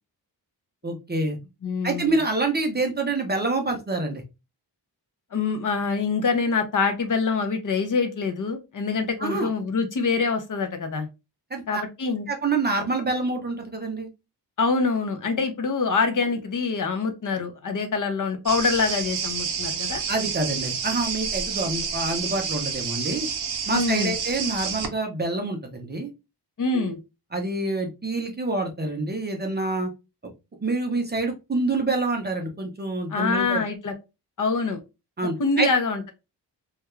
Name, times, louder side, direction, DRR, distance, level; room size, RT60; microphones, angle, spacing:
voice 1, 0.8-1.4 1.8-4.2 9.2-9.5 11.5-11.8 12.3-14.1 20.1-23.3 23.7-26.1 26.7-27.0 27.3-29.9 30.2-30.3 30.6-33.6 35.2-35.7, right 2 dB, 25° right, 3 dB, 0.5 m, -27 dB
voice 2, 1.6-2.2 5.3-11.1 11.7-12.3 14.6-20.0 23.7-24.1 26.6-27.0 33.1-33.9 34.4-34.8 35.4-36.1, left 4 dB, 50° left, 6 dB, 0.5 m, -25 dB
sound 1, 18.5-24.9, right 6 dB, 70° right, 0.6 m, -29 dB
2.3 x 2.2 x 2.9 m, 0.25 s
wide cardioid pair, 180°, 41 cm